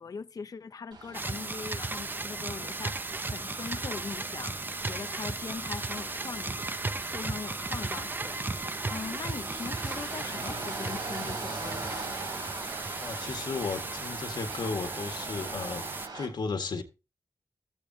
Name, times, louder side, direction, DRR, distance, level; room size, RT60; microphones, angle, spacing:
voice 1, 0.0-8.3 8.9-12.1, left 5 dB, 55° left, 0.7 m, -41 dB
sound 1, 0.9-16.3, right 3 dB, 75° right, 3.2 m, -42 dB
sound 2, 1.1-16.1, right 3 dB, 25° right, 0.7 m, -36 dB
voice 2, 13.0-15.9 16.1-16.8, left 4 dB, 75° left, 1.7 m, -34 dB
15.5 x 13.5 x 2.8 m
wide cardioid pair, 130°, 8 cm